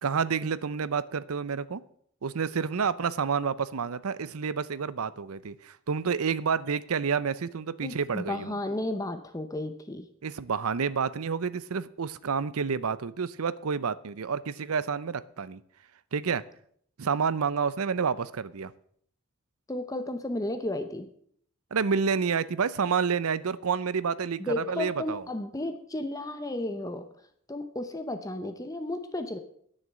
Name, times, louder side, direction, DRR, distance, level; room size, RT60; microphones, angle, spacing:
voice 1, 0.0-1.8 2.2-8.5 10.2-15.6 16.1-16.4 17.0-18.7 21.7-25.2, right 6 dB, 85° right, 17 dB, 0.6 m, -29 dB
voice 2, 7.8-10.1 19.7-21.1 24.4-27.1 27.5-29.4, left 1 dB, 15° left, 8 dB, 0.7 m, -33 dB
10.5 x 6.6 x 7.9 m, 0.64 s
head